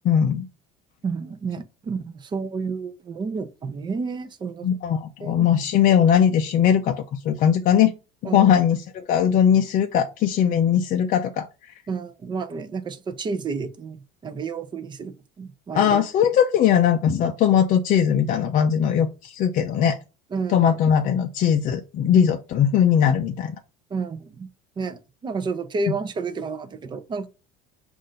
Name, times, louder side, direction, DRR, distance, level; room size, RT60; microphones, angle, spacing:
voice 1, 0.0-0.5 4.6-7.0 7.2-7.9 8.2-11.5 15.7-20.0 20.5-23.6, left 8 dB, 45° left, 0.5 m, -20 dB
voice 2, 1.0-4.7 5.2-5.5 8.2-8.5 11.9-16.0 20.3-20.8 23.9-24.5 24.8-27.3, right 4 dB, 25° right, 0.6 m, -30 dB
5.4 x 2.5 x 3.8 m
cardioid pair, 135°, 20 cm